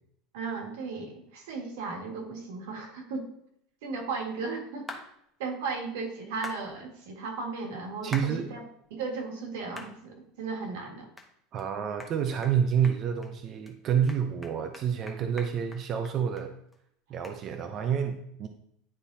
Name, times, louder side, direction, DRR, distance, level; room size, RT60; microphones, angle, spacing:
voice 1, 0.3-3.3 3.8-5.0 5.4-8.6 8.9-11.1, right 4 dB, 80° right, 2 dB, 1.7 m, -36 dB
sound 1, 4.9-5.1 6.4-6.6 8.1-8.3 8.8-8.9 9.8-9.9 10.4-10.5 11.2-11.3 11.6-11.7 12.0-12.1 12.4-12.6 12.8-13.3 13.7-13.8 14.1-16.5 16.7-16.8 17.2-17.4, left 2 dB, 5° left, 0.8 m, -43 dB
voice 2, 8.0-8.5 11.5-16.6 17.1-18.5, right 8 dB, 35° right, 6 dB, 0.5 m, -28 dB
10.0 x 4.2 x 2.7 m, 0.74 s
supercardioid pair, 155°, 0 cm